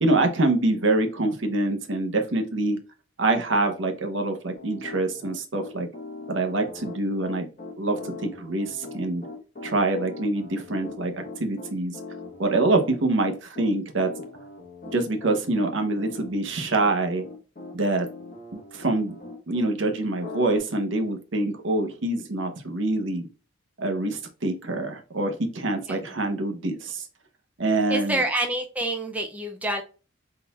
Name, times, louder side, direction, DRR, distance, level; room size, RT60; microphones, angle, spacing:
voice 1, 0.0-2.8 3.2-5.9 6.3-7.5 7.8-9.3 9.6-12.0 12.4-14.1 14.9-17.2 17.7-18.1 18.5-19.2 19.5-23.3 23.8-27.1 27.6-28.2, right 2 dB, 65° right, 4 dB, 0.8 m, -25 dB
Piano, 4.6-19.7 20.2-20.6, left 3 dB, 40° left, 1.2 m, -41 dB
voice 2, 27.9-29.8, right 1 dB, 5° right, 3 dB, 0.4 m, -27 dB
4.0 x 3.8 x 2.3 m, 0.35 s
head